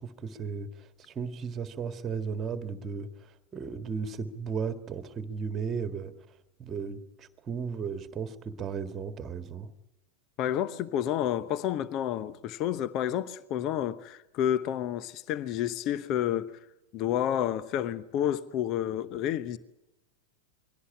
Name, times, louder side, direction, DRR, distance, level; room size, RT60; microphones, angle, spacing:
voice 1, 0.0-3.1 3.5-6.1 6.6-9.7, right 6 dB, 25° right, 1.8 m, -35 dB
voice 2, 10.4-16.5 16.9-19.6, left 11 dB, 40° left, 0.9 m, -30 dB
22.5 x 17.0 x 9.8 m
figure-of-eight pair, 90°, 0 cm